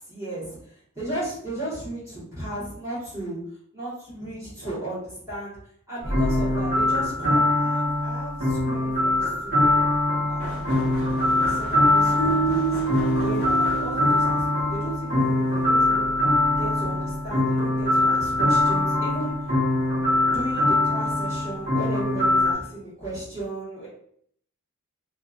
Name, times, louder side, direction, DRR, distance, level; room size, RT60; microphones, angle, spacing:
voice 1, 0.0-3.4 3.7-5.6 5.9-9.8 10.3-12.8 13.2-16.1 16.6-19.3 20.3-23.9, right 1 dB, 15° right, -11 dB, 1.3 m, -35 dB
sound 1, 6.0-22.5, left 1 dB, 45° right, 1.5 m, -23 dB
sound 2, 10.4-14.3, equal, 5° left, 1.2 m, -37 dB
sound 3, 12.2-15.3, right 7 dB, 55° left, 0.5 m, -29 dB
2.7 x 2.5 x 2.4 m, 0.64 s
head